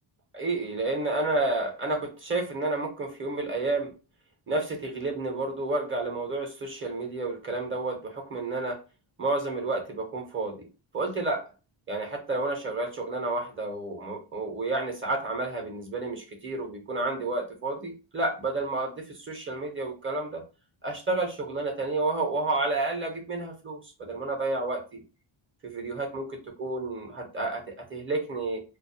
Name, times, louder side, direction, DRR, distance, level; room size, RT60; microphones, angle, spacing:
voice 1, 0.3-3.9 4.5-8.8 9.2-10.7 10.9-11.4 11.9-20.4 20.8-25.0 25.6-28.6, right 2 dB, 25° right, 3 dB, 0.6 m, -30 dB
2.3 x 2.3 x 2.6 m, 0.31 s
cardioid pair, 130°, 48 cm